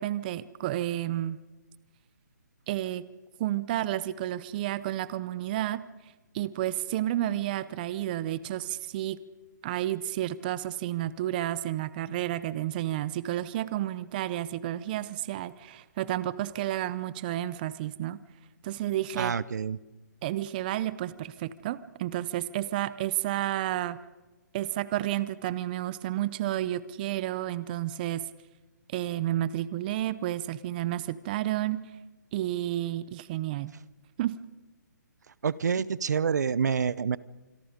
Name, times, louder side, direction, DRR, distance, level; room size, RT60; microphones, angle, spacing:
voice 1, 0.0-1.4 2.7-3.0 3.4-5.9 6.3-9.2 9.6-18.2 18.6-19.3 20.2-24.0 24.5-28.3 28.9-31.9 32.3-33.7 34.2-34.4, right 13 dB, 30° right, 17 dB, 0.7 m, -31 dB
voice 2, 19.2-19.8 35.4-37.2, right 6 dB, 65° right, 20 dB, 0.9 m, -27 dB
27.0 x 22.5 x 5.2 m, 1.2 s
hypercardioid pair, 155°, 10 cm